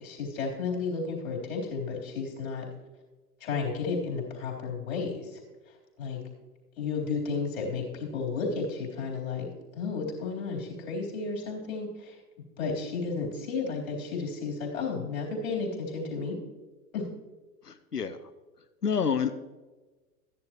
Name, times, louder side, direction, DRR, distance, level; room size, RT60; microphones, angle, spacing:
voice 1, 0.0-2.7 3.4-5.4 6.0-6.2 6.8-12.2 12.6-16.4 16.9-17.1, left 4 dB, 60° left, -2 dB, 3.7 m, -33 dB
voice 2, 17.7-18.2 18.8-19.3, left 6 dB, 85° left, 12 dB, 0.8 m, -28 dB
14.0 x 10.5 x 3.0 m, 1.2 s
figure-of-eight pair, 95°, 46 cm